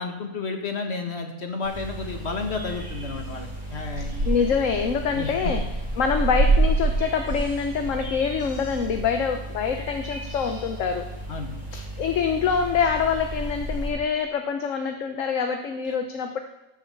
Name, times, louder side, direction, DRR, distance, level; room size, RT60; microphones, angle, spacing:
voice 1, 0.0-4.2 5.1-5.3 11.3-11.9, left 4 dB, 50° left, 3 dB, 2.0 m, -32 dB
sound 1, 1.6-13.9, right 2 dB, 55° right, 5.9 m, -30 dB
sound 2, 1.7-14.1, right 1 dB, 40° right, 0.3 m, -38 dB
voice 2, 4.2-5.6 6.0-11.1 12.0-16.4, left 6 dB, 65° left, 6 dB, 1.2 m, -25 dB
17.0 x 7.1 x 7.2 m, 0.98 s
omnidirectional pair, 1.5 m